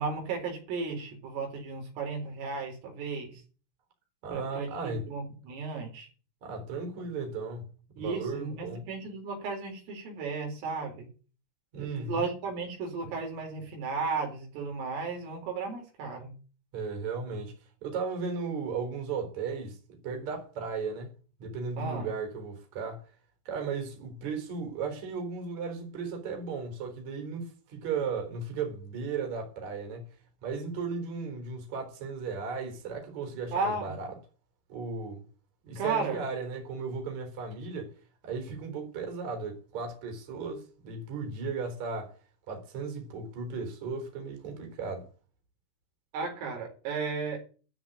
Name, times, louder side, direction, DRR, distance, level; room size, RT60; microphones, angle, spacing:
voice 1, 0.0-3.4 4.3-6.1 8.0-11.1 11.7-16.3 21.8-22.1 33.5-34.0 35.8-36.2 46.1-47.4, right 4 dB, 75° right, 6.7 m, -34 dB
voice 2, 4.2-5.1 6.4-8.9 11.7-12.2 16.7-19.8 20.0-21.1 21.4-23.1 23.4-30.1 30.4-34.2 34.7-35.2 35.7-37.9 38.2-42.2 42.5-45.1, right 4 dB, 35° right, 4.9 m, -35 dB
13.5 x 6.5 x 9.5 m
omnidirectional pair, 5.9 m